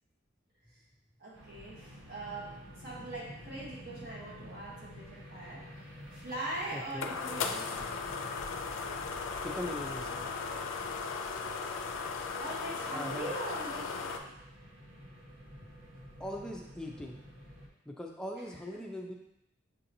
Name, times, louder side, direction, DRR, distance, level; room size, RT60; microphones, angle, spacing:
voice 1, 1.2-8.0 12.4-13.8 14.2-14.3 18.7-18.8, right 2 dB, 55° right, -5 dB, 1.1 m, -42 dB
sound 1, 1.3-17.7, equal, 85° right, 0.9 m, -51 dB
sound 2, 6.2-14.2, left 5 dB, 80° left, 0.4 m, -37 dB
voice 2, 6.7-7.1 9.4-10.3 12.9-13.3 16.2-17.2 17.9-19.1, left 1 dB, 5° left, 0 dB, 0.3 m, -40 dB
6.4 x 2.8 x 2.6 m, 0.84 s
head